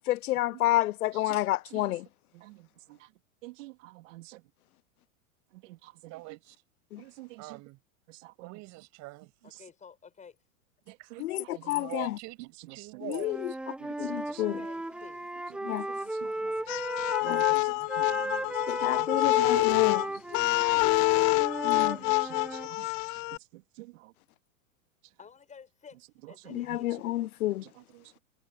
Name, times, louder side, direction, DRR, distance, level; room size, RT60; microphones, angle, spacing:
voice 1, 0.1-2.0 6.9-7.0 11.2-11.4 11.7-12.0 13.2-13.3 14.0-14.5 15.7-15.8 17.2-17.4 18.7-20.0 21.6-22.0 26.5-27.6, left 15 dB, 85° left, 0.6 m, -29 dB
voice 2, 1.1-2.0 2.3-4.5 5.5-6.4 7.0-7.6 8.1-8.6 9.4-9.7 10.9-11.8 12.4-13.0 13.8-14.7 15.5-16.9 17.2-20.6 21.7-24.1 25.0-25.2 25.9-27.0 27.5-28.1, right 20 dB, 60° right, 3.2 m, -50 dB
voice 3, 6.1-6.6 7.4-7.8 8.4-9.6 11.1-11.2 11.7-13.6, right 21 dB, 40° right, 8.0 m, -44 dB
voice 4, 9.4-10.4 14.4-15.2 25.2-26.0 26.3-26.9, left 6 dB, 15° left, 7.1 m, -51 dB
Wind instrument woodwind instrument, 13.2-17.6 17.9-22.7, right 1 dB, ahead, 0.7 m, -36 dB
sound 1, 16.7-23.4, left 26 dB, 35° left, 0.5 m, -26 dB
hypercardioid pair, 135°, 42 cm